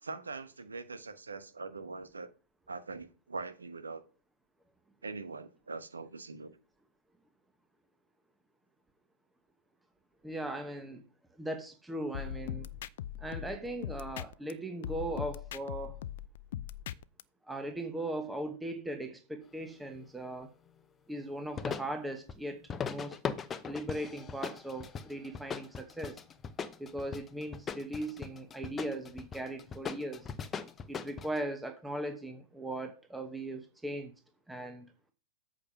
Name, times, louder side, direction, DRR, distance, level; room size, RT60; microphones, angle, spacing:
voice 1, 0.0-2.3 2.7-4.0 5.0-6.5, right 3 dB, 85° right, 1.0 m, -42 dB
voice 2, 10.2-11.0 11.4-12.7 13.2-16.0 17.5-20.5 21.1-22.6 22.9-23.2 23.7-26.2 26.8-30.3 30.9-34.1 34.5-34.9, right 1 dB, 5° right, 1.1 m, -38 dB
sound 1, 12.1-14.5 14.8-17.2, left 11 dB, 60° left, 0.5 m, -40 dB
sound 2, 21.5-21.9 22.3-22.4 22.7-31.4, left 6 dB, 20° left, 0.7 m, -39 dB
8.5 x 5.1 x 5.8 m
hypercardioid pair, 110°, 0 cm